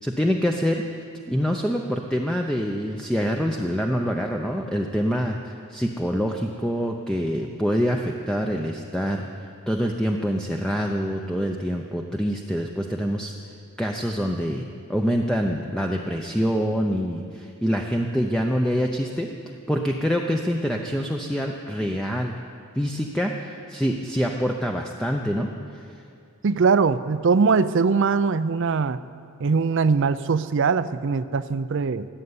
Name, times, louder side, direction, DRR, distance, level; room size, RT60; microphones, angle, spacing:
voice 1, 0.0-0.8 1.3-9.3 9.7-13.4 13.8-14.6 14.9-19.3 19.7-22.3 22.7-25.5 25.7-25.9, equal, 5° left, 1 dB, 0.6 m, -25 dB
voice 2, 26.4-29.0 29.4-32.1, right 5 dB, 55° right, 14 dB, 0.5 m, -21 dB
17.5 x 8.1 x 9.7 m, 2.6 s
head